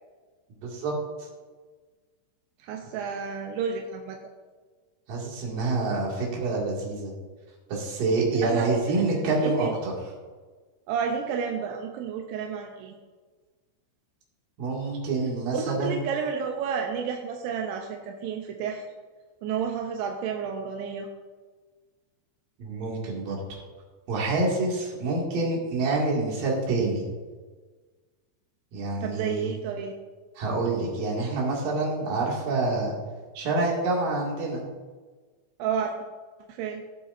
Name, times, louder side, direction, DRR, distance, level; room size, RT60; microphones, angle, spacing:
voice 1, 0.6-0.9 5.1-7.1 7.7-9.9 14.6-16.0 22.6-23.6 24.1-27.1 28.7-29.5 30.4-32.9 33.4-34.6, right 3 dB, 50° right, -3 dB, 3.5 m, -27 dB
voice 2, 2.7-4.2 8.4-9.0 9.4-9.7 10.9-12.9 15.5-18.9 19.4-21.1 29.0-30.0 35.6-35.9 36.6-36.8, right 6 dB, 80° right, 2 dB, 2.5 m, -31 dB
19.0 x 8.0 x 2.7 m, 1.4 s
omnidirectional pair, 5.7 m